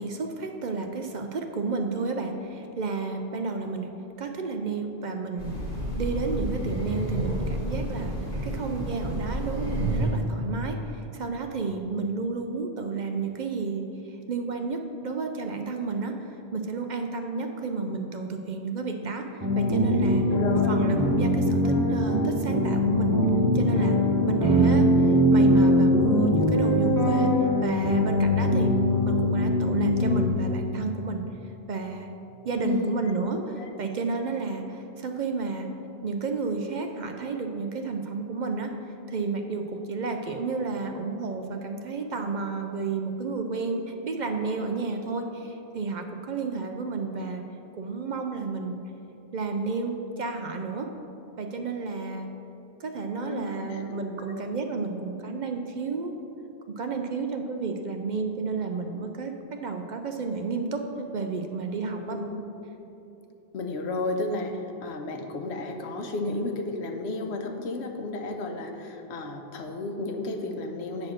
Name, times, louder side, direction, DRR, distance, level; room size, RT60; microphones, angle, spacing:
voice 1, 0.0-3.9 4.2-5.6 6.0-8.1 8.4-23.2 23.5-24.0 24.3-28.8 29.0-31.2 31.7-32.1 32.4-33.4 33.8-35.7 36.0-38.7 39.1-47.4 47.7-48.8 49.3-50.9 51.4-52.3 52.8-56.1 56.8-62.2, right 4 dB, 55° right, 4 dB, 0.6 m, -31 dB
Train, 5.4-10.3, right 1 dB, 45° left, 2.0 m, -30 dB
sound 1, 19.4-30.3, equal, 20° right, 1.1 m, -22 dB
voice 2, 20.3-20.8 32.6-33.0 33.3-33.9 53.1-54.4 62.0-62.4 63.5-71.1, left 2 dB, 90° left, 4 dB, 1.0 m, -33 dB
8.6 x 4.2 x 6.4 m, 2.9 s
omnidirectional pair, 1.1 m